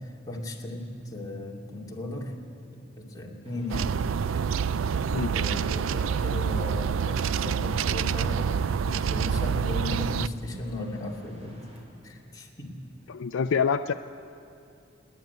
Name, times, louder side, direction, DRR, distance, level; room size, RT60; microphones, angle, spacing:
voice 1, 0.0-2.3 2.7-3.9 5.3-8.5 8.9-11.6 12.0-12.7, left 1 dB, 20° left, -2 dB, 2.5 m, -36 dB
sound 1, 3.4-11.8, equal, 35° right, 3.7 m, -53 dB
sound 2, 3.7-10.3, right 7 dB, 80° right, 0.4 m, -27 dB
voice 2, 13.1-13.9, left 6 dB, 80° left, 7 dB, 0.4 m, -26 dB
26.5 x 10.5 x 9.4 m, 2.6 s
head